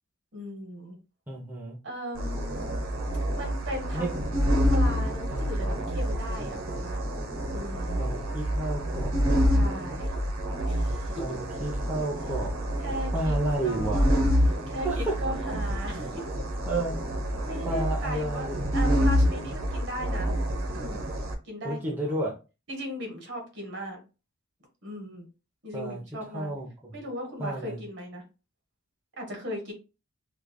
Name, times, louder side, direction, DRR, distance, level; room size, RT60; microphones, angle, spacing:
voice 1, 0.3-1.0 1.8-2.8 3.4-4.3 4.7-7.0 7.5-8.0 9.5-10.1 10.6-11.2 12.8-13.3 13.6-14.2 14.7-16.2 17.4-18.5 18.7-20.3 20.7-21.1 21.4-22.2 22.7-24.0 24.8-25.3 25.6-26.5 26.9-28.2 29.2-29.7, equal, 60° right, 1 dB, 1.5 m, -37 dB
voice 2, 1.3-1.8 3.9-4.1 5.3-5.7 8.0-9.5 11.2-12.5 13.1-14.2 14.8-15.1 15.6-15.8 16.7-17.0 17.6-18.8 21.6-22.3 25.7-26.0 26.3-26.9 27.4-27.8, right 2 dB, 10° right, -4 dB, 0.7 m, -32 dB
sound 1, 2.2-21.3, equal, 85° right, 1.0 m, -27 dB
5.0 x 2.4 x 2.2 m, 0.30 s
head